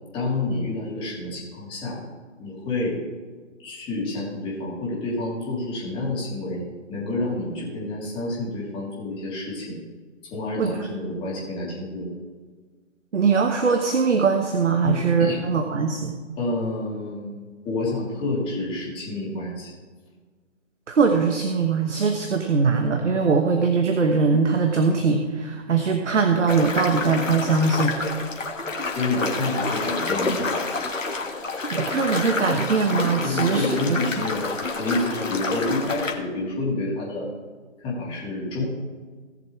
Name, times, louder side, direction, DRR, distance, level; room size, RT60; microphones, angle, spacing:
voice 1, 0.1-2.0 2.4-3.0 3.6-6.6 6.9-9.8 10.3-12.1 14.8-15.4 16.4-19.7 28.9-30.4 33.2-34.4 34.8-37.3 37.8-38.6, left 2 dB, 15° left, -5 dB, 2.9 m, -28 dB
voice 2, 13.1-16.1 20.9-28.0 31.7-34.0, right 5 dB, 70° right, 5 dB, 1.3 m, -21 dB
sound 1, 26.5-36.1, left 3 dB, 90° left, 1.9 m, -28 dB
18.0 x 7.1 x 3.2 m, 1.5 s
figure-of-eight pair, 145°, 37 cm